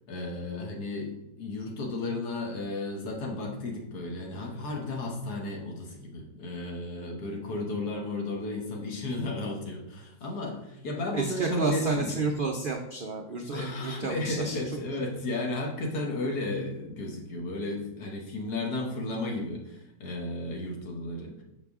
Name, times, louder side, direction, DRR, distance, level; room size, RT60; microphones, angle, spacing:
voice 1, 0.1-12.2 13.5-21.4, left 2 dB, 75° left, 1 dB, 1.7 m, -34 dB
voice 2, 11.1-14.8, right 3 dB, 85° right, 2 dB, 0.4 m, -31 dB
6.6 x 4.8 x 3.5 m, 0.83 s
omnidirectional pair, 1.7 m